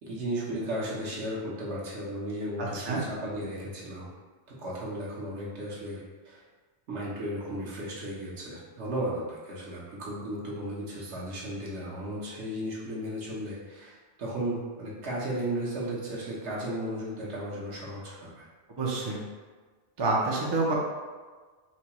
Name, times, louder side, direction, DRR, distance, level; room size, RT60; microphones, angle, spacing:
voice 1, 0.0-4.1 4.6-6.4 6.9-18.5, right 1 dB, 70° right, -6 dB, 1.2 m, -35 dB
voice 2, 2.6-3.0 18.8-19.2 20.0-20.8, right 3 dB, 35° right, -3 dB, 0.4 m, -28 dB
4.2 x 2.3 x 2.9 m, 1.4 s
omnidirectional pair, 1.2 m